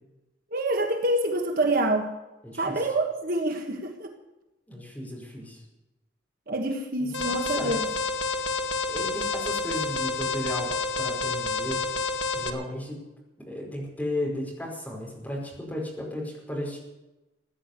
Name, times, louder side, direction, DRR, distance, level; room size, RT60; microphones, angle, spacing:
voice 1, 0.5-2.1 2.5-4.1 6.5-7.9, right 1 dB, 50° right, 4 dB, 1.5 m, -26 dB
voice 2, 2.4-2.8 4.7-5.6 7.0-7.7 8.9-11.8 12.3-13.0 13.5-16.8, left 1 dB, 10° left, -3 dB, 5.2 m, -34 dB
Alarm, 7.1-12.5, left 4 dB, 80° left, 1.7 m, -29 dB
16.5 x 10.0 x 8.2 m, 1.0 s
head